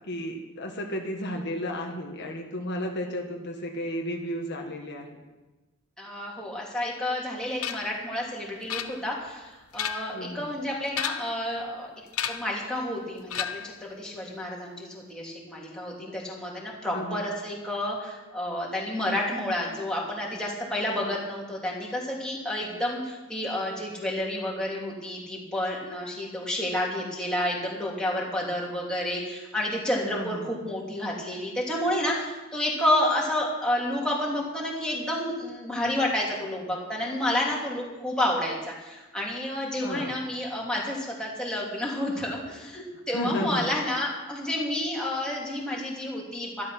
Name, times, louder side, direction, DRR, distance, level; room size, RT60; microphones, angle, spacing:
voice 1, 0.1-5.2 10.1-10.5 16.9-17.2 30.1-30.5 39.8-40.2 43.1-43.7, equal, 55° left, 2 dB, 1.5 m, -33 dB
voice 2, 6.0-11.9 12.3-46.6, left 1 dB, 5° left, -4 dB, 3.1 m, -30 dB
sound 1, 7.6-8.0 8.7-9.3 9.6-10.2 10.9-11.4 12.1-12.6 13.3-13.8, left 9 dB, 85° left, 0.9 m, -33 dB
12.5 x 12.0 x 6.0 m, 1.1 s
head